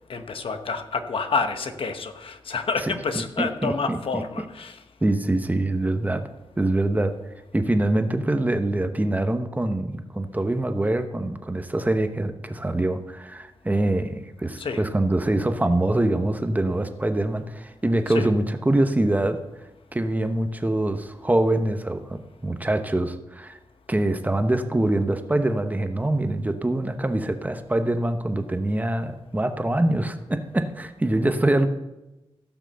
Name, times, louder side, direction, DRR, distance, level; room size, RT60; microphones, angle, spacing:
voice 1, 0.1-4.8 14.6-14.8 18.1-18.3, left 4 dB, 70° left, 8 dB, 1.2 m, -28 dB
voice 2, 3.4-4.2 5.0-6.3 6.6-7.1 7.5-19.4 19.9-23.6 23.9-31.7, right 1 dB, 15° right, 8 dB, 1.0 m, -24 dB
16.5 x 6.0 x 6.9 m, 1.0 s
wide cardioid pair, 100°, 9 cm